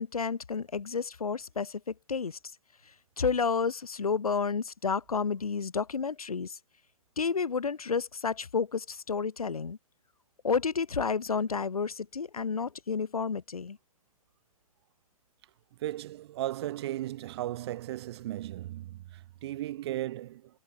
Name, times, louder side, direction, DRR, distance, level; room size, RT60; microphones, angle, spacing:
voice 1, 0.0-2.4 3.2-6.6 7.2-9.8 10.4-13.8, left 5 dB, 70° left, 5.8 m, -31 dB
voice 2, 15.8-20.5, right 14 dB, 45° right, 7.5 m, -36 dB
figure-of-eight pair, 125°, 19 cm